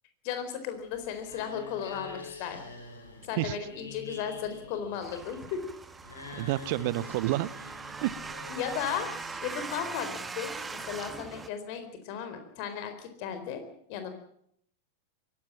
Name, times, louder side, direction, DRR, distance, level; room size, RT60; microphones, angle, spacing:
voice 1, 0.2-2.7 3.3-5.6 8.5-13.6 13.9-14.1, left 8 dB, 45° left, 9 dB, 4.3 m, -35 dB
sound 1, 0.7-9.8, left 3 dB, 75° left, 4.9 m, -47 dB
sound 2, 5.0-11.5, right 4 dB, 15° right, 1.4 m, -41 dB
voice 2, 6.3-7.5 7.9-8.3, right 17 dB, 50° right, 20 dB, 0.8 m, -30 dB
23.5 x 17.0 x 7.4 m, 0.68 s
figure-of-eight pair, 90°, 0 cm